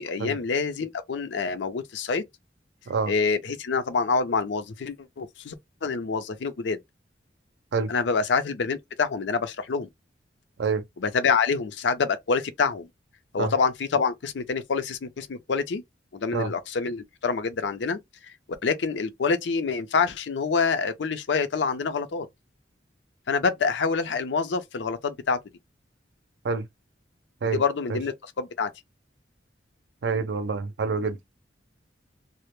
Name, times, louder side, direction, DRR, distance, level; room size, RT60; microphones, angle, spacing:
voice 1, 0.0-2.2 3.1-5.5 5.8-6.8 7.9-9.9 11.0-12.9 13.3-15.8 16.1-18.0 18.6-22.3 23.3-25.4 27.5-28.7, left 5 dB, 80° left, 0.5 m, -26 dB
voice 2, 30.0-31.2, right 4 dB, 70° right, 0.4 m, -27 dB
2.1 x 2.0 x 3.0 m
head